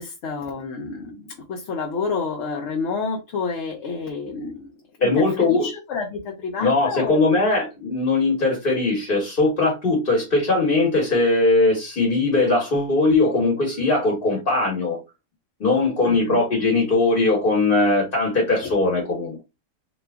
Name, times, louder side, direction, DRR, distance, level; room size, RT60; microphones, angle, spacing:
voice 1, 0.0-4.7 5.0-7.4 16.0-16.4 18.6-18.7, left 4 dB, 65° left, 0.9 m, -29 dB
voice 2, 5.0-5.7 6.6-15.0 15.6-19.4, left 3 dB, 45° left, 1.3 m, -20 dB
3.0 x 2.2 x 3.4 m
omnidirectional pair, 1.3 m